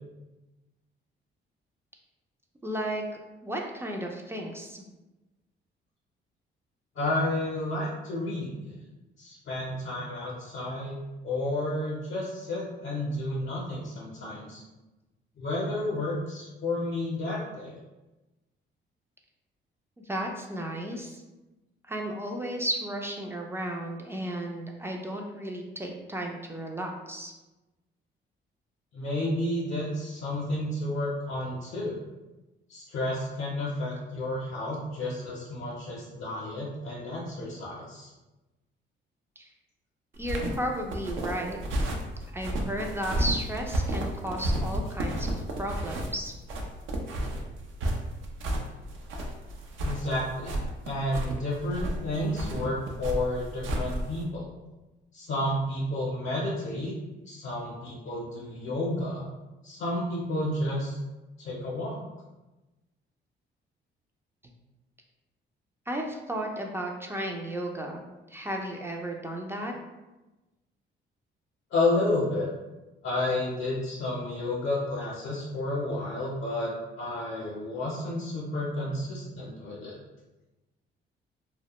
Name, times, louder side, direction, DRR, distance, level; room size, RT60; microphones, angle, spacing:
voice 1, 2.6-3.0 3.4-4.8 20.0-21.2 21.9-27.3 39.4-39.5 40.2-41.6 42.3-46.3 65.9-68.0 68.3-69.7, right 1 dB, 10° right, 0 dB, 0.3 m, -34 dB
voice 2, 6.9-8.7 9.2-14.6 15.4-17.7 28.9-32.0 32.7-38.1 49.8-50.6 50.9-54.5 55.1-56.9 57.3-59.2 59.6-61.0 61.4-62.0 71.7-72.5 73.0-80.0, left 1 dB, 70° left, -5 dB, 0.6 m, -31 dB
sound 1, 40.2-54.2, right 1 dB, 75° right, 0.5 m, -32 dB
2.2 x 2.0 x 2.9 m, 1.1 s
cardioid pair, 90°, 20 cm